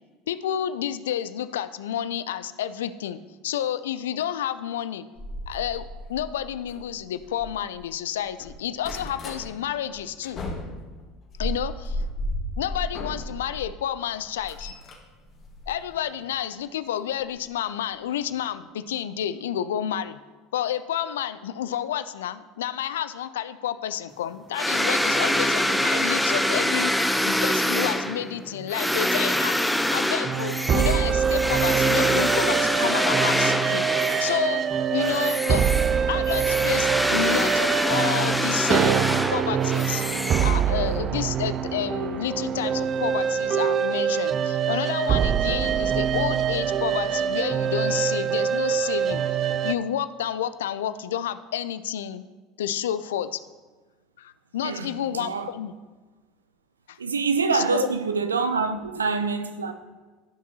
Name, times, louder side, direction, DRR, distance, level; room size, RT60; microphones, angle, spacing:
voice 1, 0.3-5.1 5.5-10.4 11.4-12.0 12.6-14.8 15.7-20.2 20.5-29.6 29.9-33.9 34.2-35.6 36.1-40.0 40.4-49.2 49.6-52.2 52.6-53.4 54.2-55.7 56.9-57.0 57.5-57.9, left 10 dB, 75° left, 0.4 m, -30 dB
sound 1, 5.2-7.9 8.3-9.4 9.9-13.7 14.1-16.3 17.3-17.5 18.0-18.1 18.3-18.4, equal, 45° left, 1.9 m, -34 dB
sound 2, 24.5-34.6 35.0-41.0, left 1 dB, 5° left, 0.6 m, -25 dB
sound 3, 30.2-49.7, right 8 dB, 40° right, 0.4 m, -24 dB
voice 2, 54.6-55.5 57.0-59.7, right 4 dB, 85° right, 0.6 m, -26 dB
14.5 x 5.8 x 2.9 m
hypercardioid pair, 70°, 0 cm